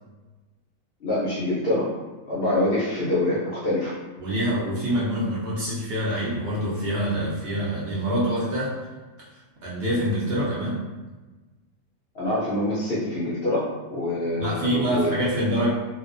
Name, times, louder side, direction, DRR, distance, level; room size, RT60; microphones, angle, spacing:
voice 1, 1.0-1.9 2.3-4.0 12.1-15.2, left 1 dB, 65° left, -8 dB, 0.6 m, -25 dB
voice 2, 4.2-8.8 9.2-9.3 9.6-10.8 14.4-15.7, equal, 60° right, -7 dB, 0.7 m, -26 dB
2.5 x 2.2 x 2.4 m, 1.2 s
omnidirectional pair, 1.5 m